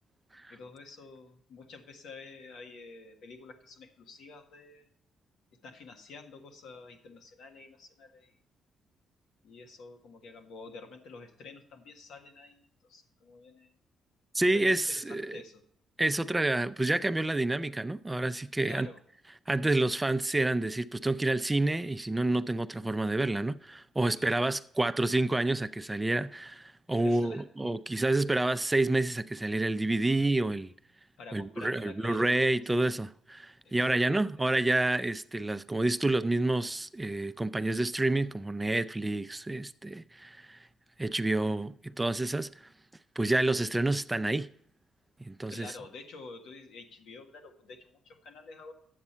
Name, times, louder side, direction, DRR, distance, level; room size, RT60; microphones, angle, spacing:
voice 1, 0.5-4.9 5.5-8.4 9.4-13.7 14.5-15.6 18.6-19.0 24.1-24.5 27.0-27.4 31.2-32.6 33.6-34.3 45.5-48.7, left 3 dB, 75° left, 1.5 m, -49 dB
voice 2, 14.3-15.4 16.0-18.9 19.5-30.7 31.3-40.6 41.0-42.5 43.2-44.5 45.2-45.7, right 2 dB, 15° right, 0.4 m, -29 dB
11.0 x 8.1 x 4.4 m
cardioid pair, 90°, 0 cm